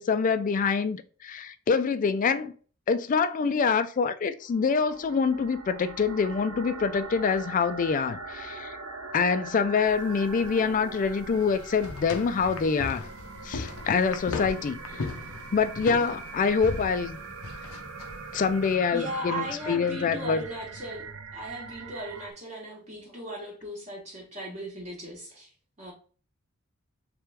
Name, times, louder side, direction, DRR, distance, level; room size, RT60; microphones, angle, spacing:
voice 1, 0.0-2.5 2.9-8.8 9.1-13.1 13.4-15.1 15.5-17.2 18.3-20.4, left 5 dB, 40° left, 0.3 m, -26 dB
sound 1, 4.5-22.3, right 3 dB, 70° right, 0.6 m, -42 dB
sound 2, 9.9-18.8, left 3 dB, 80° left, 0.6 m, -39 dB
voice 2, 18.9-25.5 25.8-25.9, right 1 dB, 30° right, 1.0 m, -37 dB
3.4 x 3.2 x 3.3 m
head